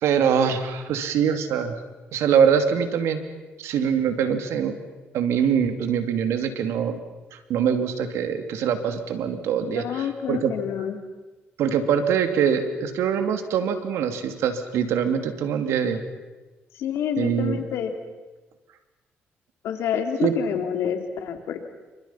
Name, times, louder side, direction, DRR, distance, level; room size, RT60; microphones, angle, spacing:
voice 1, 0.0-1.7 2.1-3.2 3.6-4.7 5.1-7.0 7.3-10.5 11.6-16.0 17.2-17.6 20.2-20.3, right 7 dB, 85° right, 8 dB, 2.7 m, -23 dB
voice 2, 9.8-11.0 16.7-17.9 19.6-21.6, left 8 dB, 80° left, 6 dB, 3.2 m, -28 dB
29.0 x 26.0 x 5.8 m, 1.2 s
cardioid pair, 90°, 5 cm